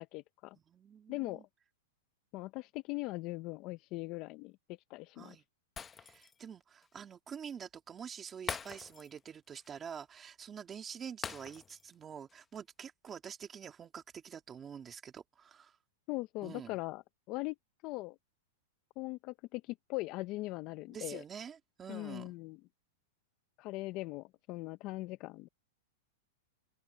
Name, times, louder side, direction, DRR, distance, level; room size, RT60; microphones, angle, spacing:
voice 1, 0.0-0.6 1.1-1.4 2.3-5.4 16.1-17.6 17.8-18.2 19.0-21.2 21.9-22.6 23.6-25.5, left 20 dB, 40° left, 0.6 m, -40 dB
voice 2, 0.7-1.4 5.2-5.4 5.9-15.8 16.4-16.8 20.9-22.3, right 7 dB, 20° right, 2.6 m, -47 dB
Shatter, 5.8-6.5 6.8-6.9 8.5-9.2 9.5-9.7 11.2-11.9 12.3-12.4, left 6 dB, 15° left, 0.9 m, -43 dB
open air
supercardioid pair, 150°, 0 cm